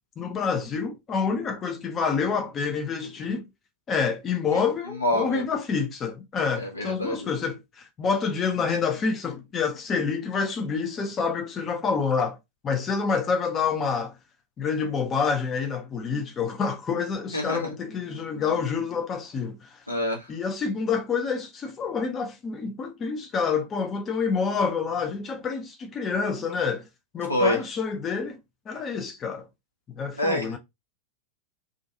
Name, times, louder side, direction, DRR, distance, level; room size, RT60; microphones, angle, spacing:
voice 1, 0.2-3.5 3.9-12.4 12.6-14.2 14.6-19.8 20.3-26.9 27.1-28.4 28.7-29.5 29.9-30.6, left 5 dB, 25° left, 0.4 m, -27 dB
voice 2, 4.9-5.4 6.6-7.3 17.3-17.7 19.9-20.3 27.3-27.6 30.2-30.6, left 1 dB, 85° left, 0.9 m, -26 dB
2.4 x 2.2 x 2.6 m
figure-of-eight pair, 90°, 0 cm